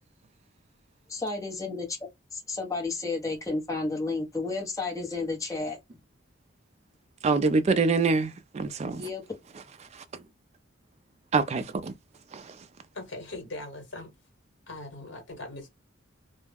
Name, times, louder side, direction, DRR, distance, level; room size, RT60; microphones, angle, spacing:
voice 1, 1.1-1.9 2.3-5.8 8.9-9.2, left 3 dB, 15° left, 0.8 m, -32 dB
voice 2, 7.2-9.1 9.9-10.2 11.3-11.9 12.3-12.6, right 4 dB, 35° right, 0.3 m, -26 dB
voice 3, 12.9-14.1 14.7-15.7, left 2 dB, 65° left, 1.2 m, -40 dB
2.3 x 2.1 x 3.3 m
head